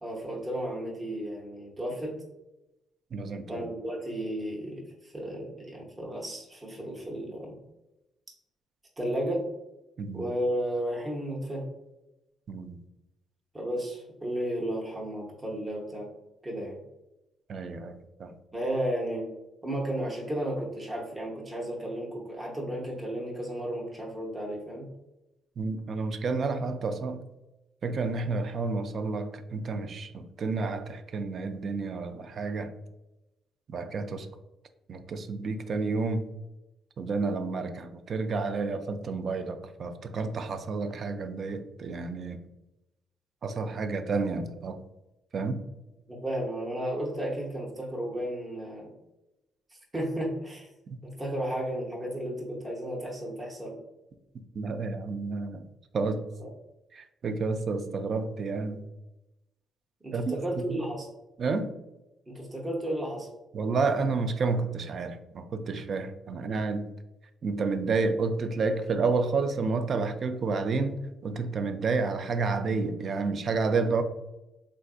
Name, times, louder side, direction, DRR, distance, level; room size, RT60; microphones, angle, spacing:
voice 1, 0.0-2.1 3.5-7.6 9.0-9.4 10.1-11.7 13.5-16.1 16.4-16.8 18.5-19.3 19.6-24.9 46.1-48.9 49.9-50.7 51.0-53.8 56.4-56.5 60.0-61.1 62.3-63.3, right 1 dB, 25° right, -3 dB, 0.8 m, -33 dB
voice 2, 3.1-3.7 10.0-10.3 12.5-12.8 17.5-18.3 25.6-27.3 27.8-32.7 33.7-34.3 34.9-36.2 37.0-42.4 43.4-44.8 45.3-45.6 50.9-51.0 54.5-55.6 55.9-56.2 56.9-58.8 60.1-60.4 60.7-60.8 61.4-61.7 63.5-66.9 67.4-74.0, right 4 dB, 55° right, 8 dB, 0.3 m, -30 dB
3.5 x 2.5 x 2.3 m, 0.96 s
cardioid pair, 90°, 0 cm